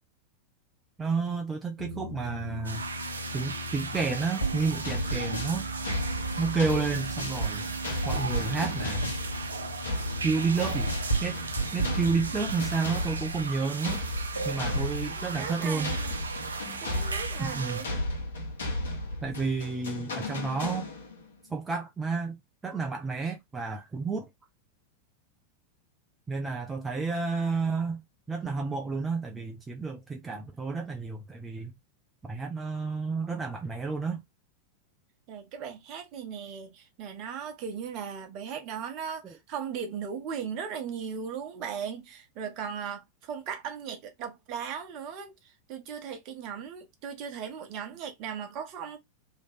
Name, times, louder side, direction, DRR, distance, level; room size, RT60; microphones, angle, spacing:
voice 1, 1.0-2.8 3.3-5.7 6.4-7.7 8.0-9.1 10.2-10.9 11.2-11.4 11.7-14.0 14.4-15.9 17.4-17.8 19.2-20.9 21.5-24.3 26.3-28.0 28.3-31.7 32.2-34.2 39.2-39.3, right 4 dB, 15° right, 0.6 m, -31 dB
sound 1, 1.8-12.5, right 2 dB, 80° left, 1.2 m, -35 dB
sound 2, 2.6-17.8, right 4 dB, 75° right, 0.6 m, -37 dB
sound 3, 4.8-21.3, left 1 dB, 65° left, 1.5 m, -35 dB
voice 2, 15.0-16.1 16.8-18.0 35.3-49.0, right 7 dB, 40° right, 1.1 m, -38 dB
3.2 x 3.1 x 4.0 m
figure-of-eight pair, 90°, 0 cm